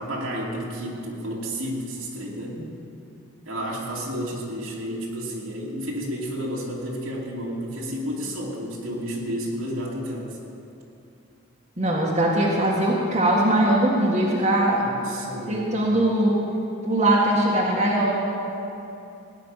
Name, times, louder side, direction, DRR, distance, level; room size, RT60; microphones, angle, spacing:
voice 1, 0.0-2.6 3.5-10.4 14.7-15.7, equal, 75° right, -3 dB, 2.7 m, -31 dB
voice 2, 11.8-14.9 15.5-16.3 16.8-18.1, right 1 dB, 30° right, -4 dB, 1.8 m, -21 dB
17.5 x 5.9 x 9.9 m, 2.8 s
head